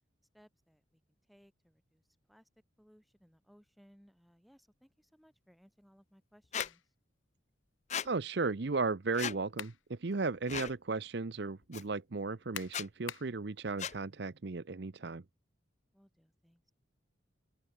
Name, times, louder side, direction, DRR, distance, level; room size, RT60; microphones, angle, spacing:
voice 1, 0.3-2.5 2.8-6.9 15.9-16.7, equal, ahead, 4.7 m, -65 dB
Squeak, 6.5-6.7 7.9-8.1 9.1-9.4 10.5-10.7 11.7-11.8 12.6-12.9 13.8-14.0, left 8 dB, 35° left, 0.6 m, -37 dB
sound 1, 6.6-6.9 9.2-9.9 10.3-10.4 12.5-13.4, left 9 dB, 80° left, 1.1 m, -43 dB
voice 2, 8.0-15.2, right 3 dB, 55° right, 0.7 m, -35 dB
open air
head